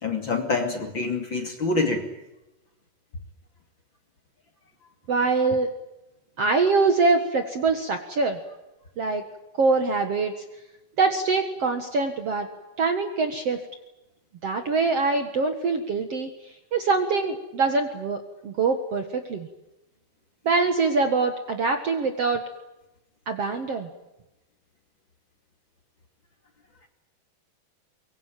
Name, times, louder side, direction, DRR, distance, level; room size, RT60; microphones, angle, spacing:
voice 1, 0.0-2.1, left 3 dB, 35° left, 5 dB, 2.7 m, -26 dB
voice 2, 5.1-5.7 6.4-8.4 9.0-9.2 9.6-10.3 11.0-12.5 12.8-13.6 14.4-19.5 20.5-22.4 23.3-23.9, right 4 dB, 50° right, 7 dB, 2.1 m, -24 dB
24.0 x 23.0 x 9.2 m, 0.95 s
omnidirectional pair, 4.5 m